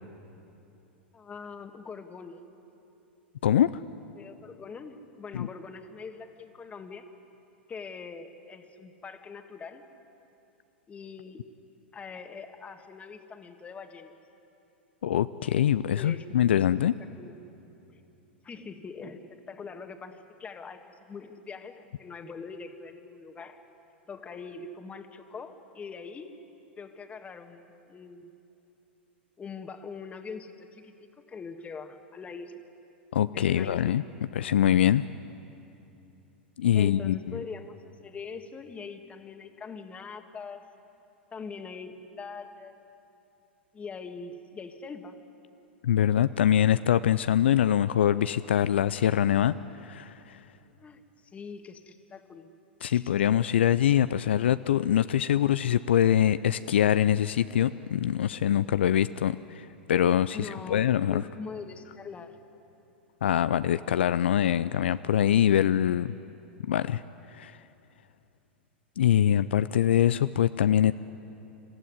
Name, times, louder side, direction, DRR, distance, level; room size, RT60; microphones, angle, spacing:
voice 1, 1.1-2.4 4.1-7.1 7.7-9.8 10.9-11.4 11.9-14.2 15.9-16.3 17.0-17.4 17.9-18.0 18.4-23.6 24.1-26.3 26.8-28.3 29.4-32.6 33.3-34.0 36.7-37.8 38.0-40.6 41.3-42.8 43.7-45.2 50.7-52.5 52.9-53.1 60.3-62.4 66.2-66.3, left 5 dB, 20° left, 7 dB, 1.7 m, -43 dB
voice 2, 3.4-3.8 5.3-5.5 15.0-16.9 33.1-34.0 34.3-35.0 36.6-37.4 45.8-49.5 49.8-50.4 52.8-61.2 63.2-66.1 66.7-67.0 67.3-67.5 69.0-70.9, left 10 dB, 70° left, 14 dB, 0.4 m, -24 dB
27.5 x 15.0 x 9.7 m, 2.9 s
hypercardioid pair, 95°, 6 cm